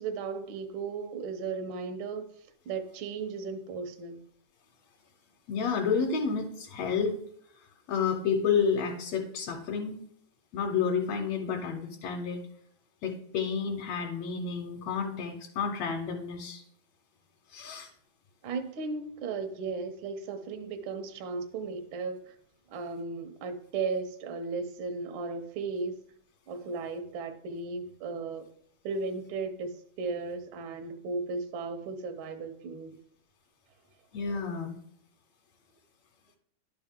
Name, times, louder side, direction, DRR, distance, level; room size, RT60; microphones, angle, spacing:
voice 1, 0.0-2.3 2.6-4.2 18.4-22.3 22.7-26.0 26.5-28.5 28.8-33.0, right 4 dB, 80° right, 1.1 m, -35 dB
voice 2, 5.5-7.2 7.9-10.0 10.5-12.4 13.0-16.6 17.5-17.9 34.1-34.8, left 6 dB, 75° left, 1.8 m, -30 dB
11.5 x 4.5 x 3.6 m
omnidirectional pair, 3.3 m